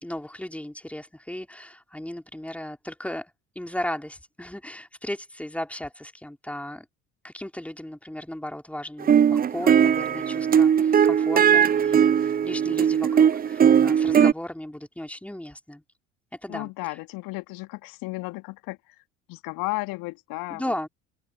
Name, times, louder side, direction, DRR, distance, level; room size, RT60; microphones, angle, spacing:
voice 1, 0.0-6.9 7.2-9.2 9.5-15.8 16.4-16.7 20.5-20.9, left 1 dB, 5° left, 4.6 m, -36 dB
sound 1, 9.0-14.3, right 8 dB, 20° right, 0.7 m, -19 dB
voice 2, 16.5-20.7, left 23 dB, 55° left, 2.4 m, -34 dB
open air
figure-of-eight pair, 60°, 40 cm